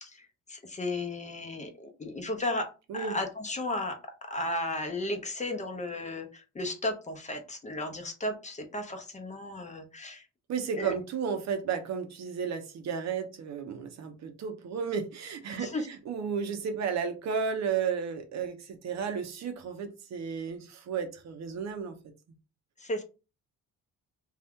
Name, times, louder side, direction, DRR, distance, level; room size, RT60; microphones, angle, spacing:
voice 1, 0.0-10.3 10.8-10.9 15.5-15.9 22.8-23.0, left 1 dB, 25° left, 0.7 m, -34 dB
voice 2, 10.5-22.0, right 6 dB, 65° right, 0.7 m, -33 dB
2.7 x 2.3 x 3.5 m
cardioid pair, 90°, 30 cm